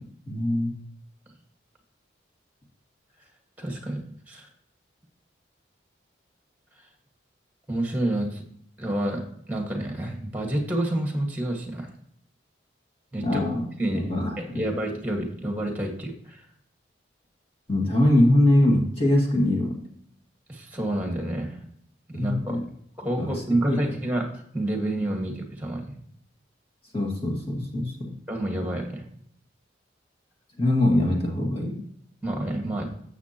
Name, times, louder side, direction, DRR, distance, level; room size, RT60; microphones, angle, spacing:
voice 1, 0.3-0.7 13.2-13.7 13.9-14.6 17.7-19.8 22.1-22.6 23.2-23.3 23.7-23.8 26.9-28.1 30.6-31.8, left 1 dB, 30° left, -1 dB, 2.0 m, -22 dB
voice 2, 3.6-4.0 4.3-4.5 7.7-8.4 8.8-9.2 9.5-11.9 13.1-13.4 13.8-14.1 14.4-16.4 20.5-21.6 22.1-22.6 23.0-24.3 24.5-26.0 28.3-29.0 32.2-32.9, right 1 dB, 10° right, 3 dB, 1.7 m, -28 dB
12.0 x 7.3 x 3.0 m, 0.68 s
head